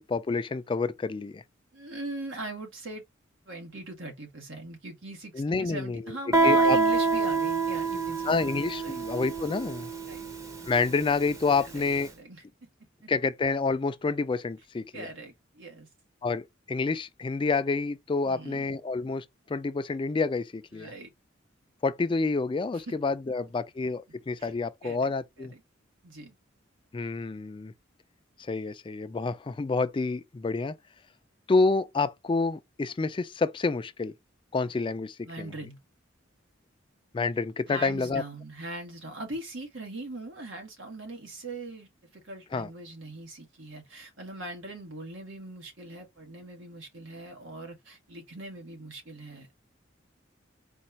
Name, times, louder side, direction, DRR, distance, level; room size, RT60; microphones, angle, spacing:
voice 1, 0.0-1.4 5.3-6.0 6.4-6.8 8.3-9.9 10.7-12.1 13.1-15.1 16.2-20.9 21.8-25.5 26.9-27.7 28.5-30.8 31.5-34.1 34.5-35.5 37.1-38.2 42.5-42.7, left 4 dB, 25° left, 0.3 m, -28 dB
voice 2, 1.7-3.0 3.4-8.3 8.8-9.0 10.1-10.3 11.6-11.8 12.1-12.7 13.0-13.1 14.9-15.9 18.2-18.7 20.7-21.1 22.7-22.9 24.4-24.5 24.8-25.6 26.0-26.3 35.2-35.8 37.7-49.5, right 2 dB, 80° right, 1.6 m, -41 dB
Guitar, 6.3-11.8, right 4 dB, 15° right, 0.7 m, -26 dB
4.3 x 2.3 x 4.0 m
head